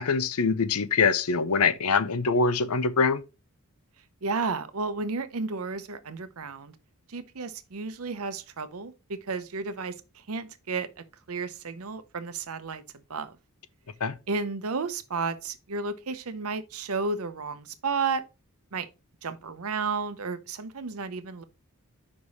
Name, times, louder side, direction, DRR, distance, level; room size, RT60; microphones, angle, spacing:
voice 1, 0.0-3.2 14.0-14.1, left 4 dB, 80° left, 0.7 m, -24 dB
voice 2, 4.2-6.7 7.1-12.8 13.1-13.4 14.3-18.2 18.7-18.9 19.2-21.4, right 4 dB, 75° right, 0.7 m, -32 dB
5.4 x 4.8 x 4.1 m
head